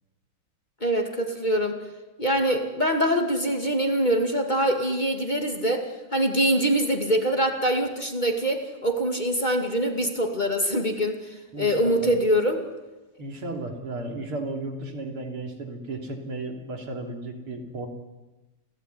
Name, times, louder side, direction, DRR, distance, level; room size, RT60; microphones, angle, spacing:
voice 1, 0.8-1.8 2.2-5.9 6.1-11.2 11.6-12.6, equal, 20° left, 4 dB, 2.3 m, -24 dB
voice 2, 11.5-12.1 13.2-17.9, right 2 dB, 80° right, 4 dB, 4.0 m, -34 dB
28.5 x 17.0 x 9.6 m, 1.1 s
omnidirectional pair, 2.4 m